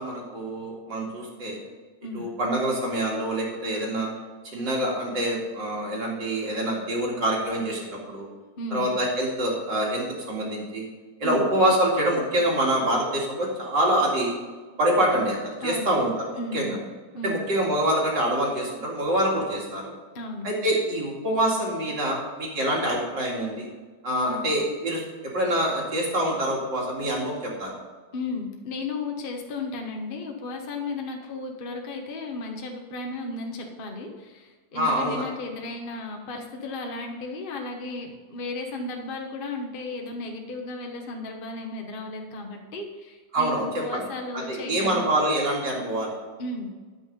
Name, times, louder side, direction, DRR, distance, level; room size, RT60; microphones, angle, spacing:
voice 1, 0.0-1.6 2.1-4.1 4.5-7.8 8.1-8.3 8.7-10.9 11.2-14.3 14.8-16.8 17.2-19.9 20.4-23.7 24.0-25.0 25.3-27.8 34.7-35.2 43.3-44.0 44.3-46.1, right 1 dB, 65° right, -2 dB, 3.0 m, -25 dB
voice 2, 15.6-15.9 16.4-16.8 17.1-17.4 20.1-20.5 24.3-24.4 28.1-45.0 46.4-46.7, left 2 dB, 35° left, 2 dB, 1.0 m, -34 dB
10.0 x 7.9 x 5.3 m, 1.4 s
omnidirectional pair, 2.1 m